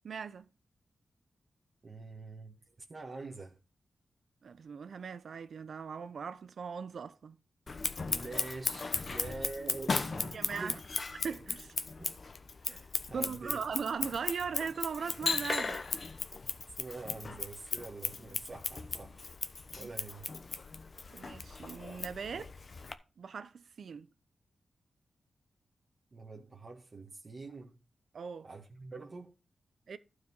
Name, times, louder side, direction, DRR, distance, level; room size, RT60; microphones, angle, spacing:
voice 1, 0.0-0.5 4.4-7.4 10.3-10.8 11.2-11.7 13.1-15.8 19.8-19.9 21.1-22.5 23.2-24.1 28.1-28.5 29.9-30.0, right 6 dB, 70° right, 0.8 m, -39 dB
voice 2, 1.8-3.6 8.0-10.8 12.0-12.2 12.6-13.6 16.8-19.2 19.7-20.3 26.1-27.8 28.4-29.3, right 3 dB, 40° right, 1.6 m, -45 dB
Scissors, 7.7-22.9, left 4 dB, 45° left, 1.0 m, -37 dB
12.0 x 5.0 x 5.5 m
wide cardioid pair, 100°, 0 cm